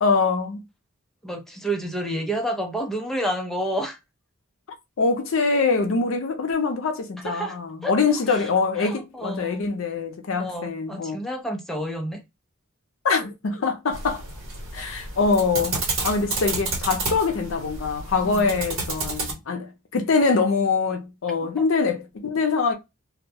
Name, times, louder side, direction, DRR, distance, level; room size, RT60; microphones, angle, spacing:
voice 1, 0.0-0.6 5.0-11.2 13.0-14.2 14.7-22.7, left 4 dB, 70° left, 0.5 m, -24 dB
voice 2, 1.2-4.0 7.2-7.6 7.8-7.9 8.3-8.5 8.8-9.7 10.4-12.2 18.2-18.5 21.6-21.7, right 1 dB, ahead, 0.4 m, -29 dB
sound 1, 13.9-19.3, right 3 dB, 65° right, 1.1 m, -30 dB
2.2 x 2.1 x 2.7 m
head